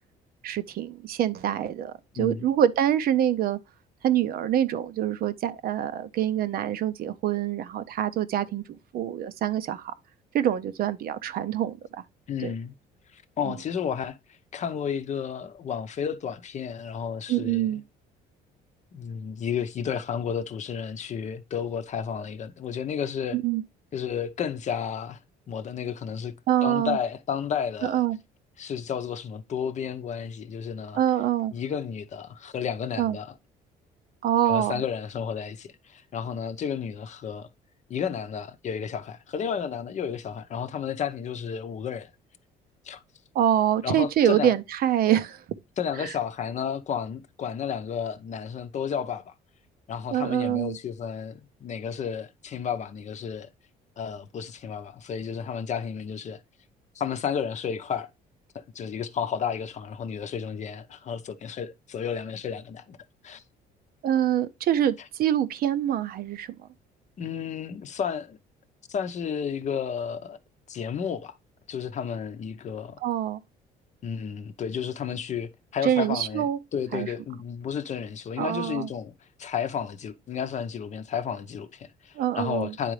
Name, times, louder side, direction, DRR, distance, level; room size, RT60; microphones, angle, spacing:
voice 1, 0.4-3.6 4.0-8.6 8.9-9.9 10.3-11.8 12.4-12.5 13.5-13.6 17.3-17.8 23.3-23.6 26.5-27.0 27.8-28.2 30.9-31.5 33.0-33.2 34.2-34.8 43.3-45.4 46.0-46.1 50.1-50.8 64.0-66.5 73.0-73.4 75.8-76.6 76.9-77.1 78.4-78.9 82.2-82.7, right 11 dB, 60° right, 0.6 m, -25 dB
voice 2, 2.2-2.5 12.3-12.7 13.1-17.7 18.9-23.4 23.9-25.2 25.5-26.3 26.6-28.0 28.6-31.0 31.5-33.3 34.5-37.5 37.9-42.1 42.8-43.0 43.8-44.6 45.8-49.3 49.9-53.5 54.0-56.4 56.9-58.1 58.5-63.0 63.2-63.4 67.2-68.4 68.9-70.4 70.7-71.4 71.7-73.0 74.0-76.5 76.7-82.9, left 7 dB, 45° left, 0.7 m, -32 dB
9.9 x 3.8 x 3.1 m
cardioid pair, 110°, 17 cm